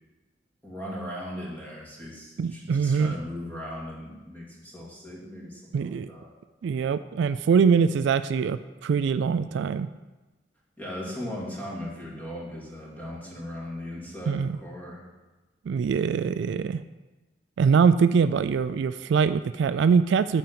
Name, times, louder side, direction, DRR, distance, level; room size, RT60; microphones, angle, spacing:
voice 1, 0.6-6.3 10.8-15.0, left 1 dB, 10° left, -5 dB, 2.4 m, -38 dB
voice 2, 2.4-3.1 5.7-6.1 6.6-9.9 14.3-14.6 15.7-16.8 17.6-20.4, right 6 dB, 65° right, 13 dB, 0.3 m, -23 dB
9.2 x 4.5 x 6.8 m, 1.2 s
head